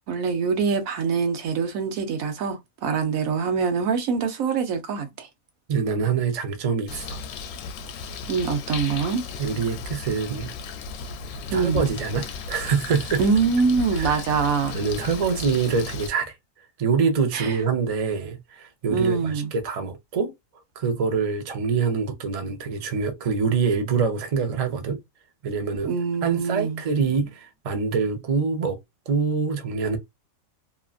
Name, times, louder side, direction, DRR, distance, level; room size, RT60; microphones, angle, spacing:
voice 1, 0.1-5.3 8.3-9.2 11.5-11.9 13.2-14.8 17.3-17.6 18.9-19.5 25.9-26.8, right 5 dB, 75° right, 1.1 m, -24 dB
voice 2, 5.7-7.2 9.4-10.5 11.5-13.2 13.9-14.2 14.7-16.3 16.8-20.3 20.8-25.0 25.4-25.9 26.2-28.8 29.1-30.0, right 5 dB, 55° right, 0.4 m, -25 dB
Bird, 6.9-16.1, left 4 dB, 85° left, 1.0 m, -35 dB
2.9 x 2.5 x 2.4 m
omnidirectional pair, 1.5 m